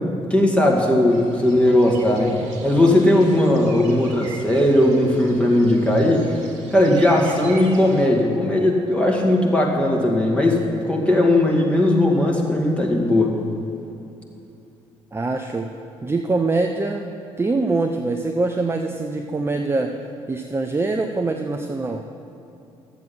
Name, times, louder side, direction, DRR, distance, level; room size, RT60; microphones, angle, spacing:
voice 1, 0.0-6.3 6.7-13.3, left 1 dB, 10° left, -1 dB, 2.1 m, -18 dB
sound 1, 1.1-8.1, right 3 dB, 75° right, 0.9 m, -39 dB
voice 2, 3.6-4.0 15.1-15.7 16.0-17.1 17.4-19.9 20.3-22.0, right 3 dB, 15° right, 4 dB, 0.6 m, -24 dB
12.0 x 7.6 x 5.8 m, 2.7 s
figure-of-eight pair, 45°, 15 cm